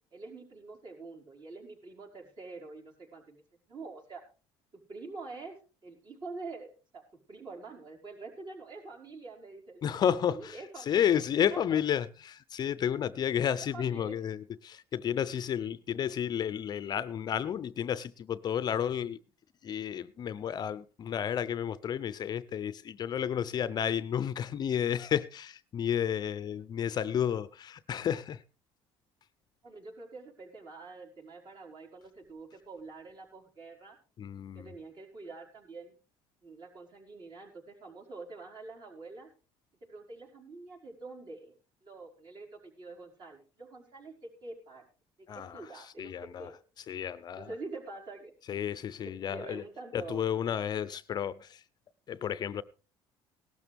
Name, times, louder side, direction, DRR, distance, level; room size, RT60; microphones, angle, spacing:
voice 1, 0.1-3.4 3.7-4.2 4.7-5.6 5.8-7.0 7.3-10.0 10.3-11.1 11.5-11.8 13.6-14.2 29.6-34.0 34.5-36.0 36.4-39.3 39.8-41.5 41.8-44.8 45.2-46.5 47.4-48.3 49.0-50.2, right 3 dB, 45° right, 5.2 m, -46 dB
voice 2, 9.8-19.2 19.6-28.4 34.2-34.7 45.3-46.5 46.9-47.5 48.5-49.6 49.9-51.6 52.1-52.6, left 9 dB, 40° left, 0.6 m, -32 dB
18.0 x 12.5 x 3.5 m
cardioid pair, 125°, 11 cm